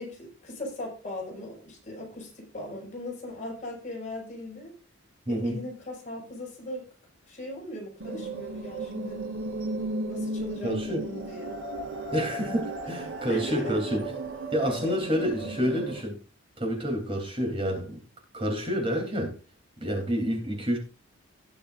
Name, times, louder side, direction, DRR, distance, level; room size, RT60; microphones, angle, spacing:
voice 1, 0.0-4.7 5.3-6.8 7.2-9.2 10.1-11.5 13.3-13.8 14.8-15.0 15.4-15.9, left 1 dB, 35° left, -1 dB, 5.4 m, -38 dB
voice 2, 5.3-5.6 10.6-11.0 12.1-14.0 14.5-16.2 16.6-18.0 18.3-19.3 19.8-20.8, equal, 25° right, 1 dB, 3.3 m, -28 dB
sound 1, 8.0-16.0, right 2 dB, 65° right, 5.4 m, -35 dB
19.0 x 6.7 x 2.6 m, 0.34 s
head